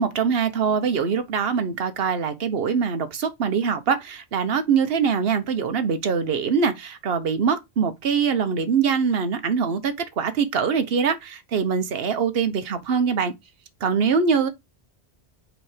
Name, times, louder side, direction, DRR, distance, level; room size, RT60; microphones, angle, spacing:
voice 1, 0.0-13.3 13.8-14.5, right 6 dB, 65° right, 1.1 m, -23 dB
5.0 x 4.4 x 4.9 m
omnidirectional pair, 1.1 m